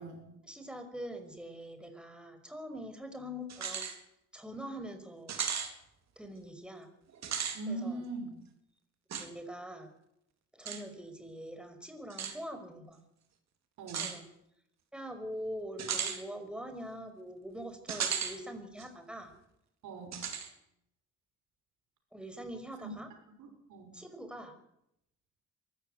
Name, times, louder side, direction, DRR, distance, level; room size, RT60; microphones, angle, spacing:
voice 1, 0.4-3.9 4.3-5.3 6.2-6.9 7.7-8.0 9.2-9.9 10.5-13.0 14.0-14.3 14.9-19.3 22.1-23.1 23.9-24.5, equal, 5° right, 7 dB, 5.5 m, -43 dB
sound 1, 3.5-4.0 4.4-4.5 5.3-5.7 7.1-7.6 9.1-9.3 10.7-10.8 12.1-12.4 13.9-14.2 15.8-16.2 17.9-18.4 18.8-18.9 20.1-20.5, right 7 dB, 60° right, 3.8 m, -35 dB
voice 2, 7.5-8.3 13.8-14.1 19.8-20.2 23.4-23.9, right 2 dB, 80° right, 5 dB, 6.3 m, -40 dB
24.0 x 15.0 x 9.7 m, 0.79 s
cardioid pair, 90°, 30 cm